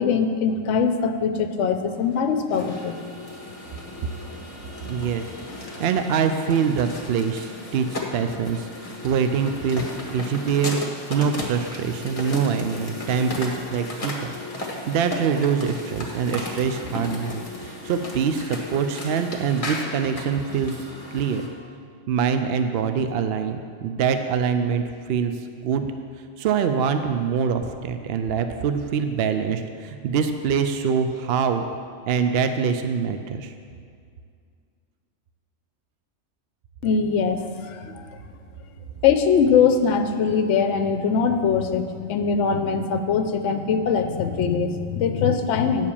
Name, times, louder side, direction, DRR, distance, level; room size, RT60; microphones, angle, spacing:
voice 1, 0.0-3.0 36.8-38.0 39.0-45.9, left 6 dB, 70° left, 8 dB, 0.9 m, -22 dB
sound 1, 1.9-21.5, left 2 dB, 30° left, 1.1 m, -35 dB
voice 2, 4.8-5.2 5.8-10.8 11.1-14.4 14.6-20.7 21.1-21.5 22.1-25.3 25.6-25.9 26.4-31.6 32.1-33.5, right 6 dB, 65° right, 8 dB, 0.7 m, -24 dB
9.6 x 4.9 x 7.0 m, 2.2 s
omnidirectional pair, 1.3 m